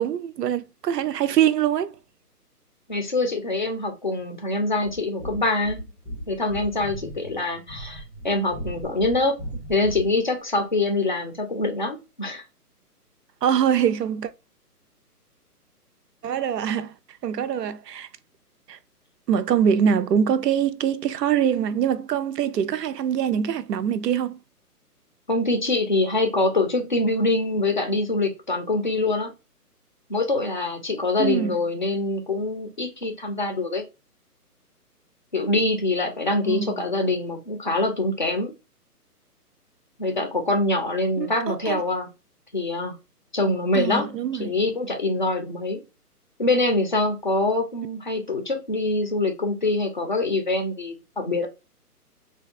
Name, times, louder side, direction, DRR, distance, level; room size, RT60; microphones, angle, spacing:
voice 1, 0.0-1.9 13.4-14.3 16.2-17.0 17.2-18.1 18.7-18.8 19.3-24.4 31.2-31.6 36.4-36.9 41.2-41.8 43.7-44.5, right 8 dB, 90° right, 0.5 m, -23 dB
voice 2, 2.9-5.8 6.3-9.4 9.7-12.4 25.3-29.3 30.1-33.8 35.3-38.5 40.0-42.1 42.5-43.0 43.3-44.1 44.4-45.8 46.4-51.5, left 2 dB, 30° left, 0.4 m, -24 dB
sound 1, 4.8-10.2, right 1 dB, 5° right, 0.7 m, -37 dB
3.3 x 2.3 x 2.5 m
hypercardioid pair, 145°, 47 cm